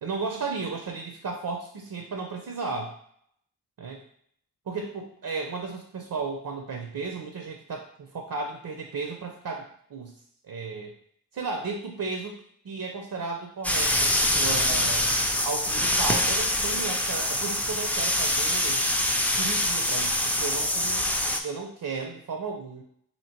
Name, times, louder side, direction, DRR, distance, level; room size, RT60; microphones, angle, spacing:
voice 1, 0.0-3.0 3.8-4.0 4.7-10.1 10.4-10.9 11.3-12.4 12.6-15.1 15.4-18.8 19.3-22.8, right 4 dB, 65° right, 2 dB, 0.6 m, -34 dB
sound 1, 13.6-21.4, left 1 dB, 5° left, 0.3 m, -25 dB
3.0 x 2.8 x 4.4 m, 0.65 s
wide cardioid pair, 105°, 37 cm